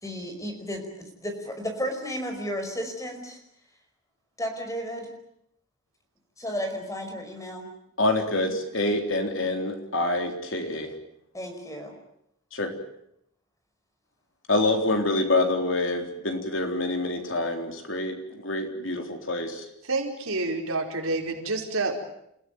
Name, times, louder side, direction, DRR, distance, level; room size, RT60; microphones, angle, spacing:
voice 1, 0.0-3.4 4.4-5.1 6.4-7.7 8.3-8.5 11.3-11.9, equal, 15° left, 5 dB, 5.1 m, -33 dB
voice 2, 8.0-10.9 12.5-12.7 14.5-19.6, left 2 dB, 60° left, 4 dB, 3.8 m, -26 dB
voice 3, 19.9-21.9, right 3 dB, 75° right, 1 dB, 5.1 m, -28 dB
29.5 x 16.5 x 9.4 m, 0.76 s
head